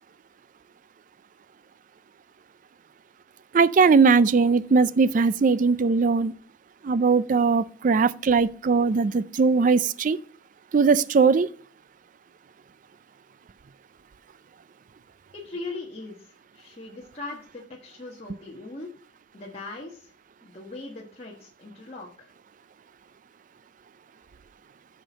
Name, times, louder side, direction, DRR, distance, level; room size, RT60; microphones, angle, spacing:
voice 1, 3.5-6.3 6.8-10.2 10.7-11.5, right 4 dB, 45° right, 0.4 m, -20 dB
voice 2, 15.3-18.9 19.3-20.1 20.4-22.3, left 3 dB, 35° left, 1.2 m, -40 dB
7.8 x 5.9 x 5.1 m
head